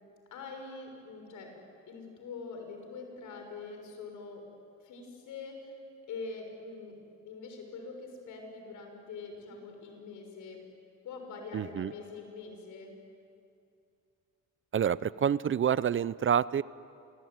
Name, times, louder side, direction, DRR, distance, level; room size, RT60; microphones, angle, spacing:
voice 1, 0.3-1.5 1.9-4.5 4.8-5.8 6.1-7.0 7.2-10.6 11.0-13.0, left 4 dB, 80° left, 3 dB, 6.5 m, -44 dB
voice 2, 11.5-11.9 14.7-16.6, right 8 dB, 40° right, 19 dB, 0.6 m, -28 dB
27.5 x 22.5 x 9.6 m, 2.5 s
cardioid pair, 90°, 30 cm